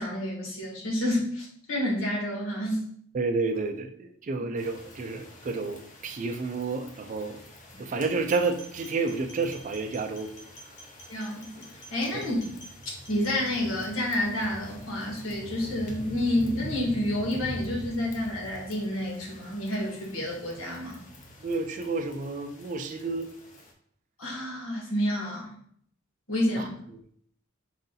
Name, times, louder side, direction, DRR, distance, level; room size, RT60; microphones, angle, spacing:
voice 1, 0.0-2.9 11.1-12.4 12.8-21.0 24.2-25.5 26.3-26.7, left 1 dB, 90° left, -2 dB, 1.6 m, -29 dB
voice 2, 3.1-7.4 7.8-10.3 12.1-12.3 21.4-23.3 26.6-26.7, right 3 dB, 40° right, 4 dB, 0.4 m, -30 dB
sound 1, 4.6-23.7, equal, 40° left, 0.7 m, -45 dB
sound 2, 8.3-13.6, right 1 dB, 60° left, 1.0 m, -50 dB
4.8 x 2.7 x 3.8 m, 0.64 s
head